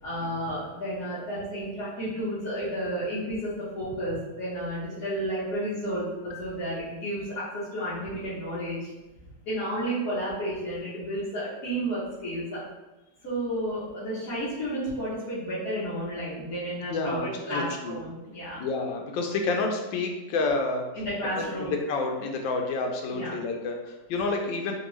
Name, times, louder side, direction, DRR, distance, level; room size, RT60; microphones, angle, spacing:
voice 1, 0.0-8.9 9.4-12.6 13.2-18.6 20.9-21.7 23.1-23.3, right 1 dB, 55° left, -11 dB, 1.4 m, -32 dB
voice 2, 16.9-18.0 18.6-20.9 21.3-24.8, left 3 dB, 85° left, 3 dB, 1.3 m, -29 dB
3.5 x 2.3 x 3.0 m, 1.1 s
omnidirectional pair, 2.0 m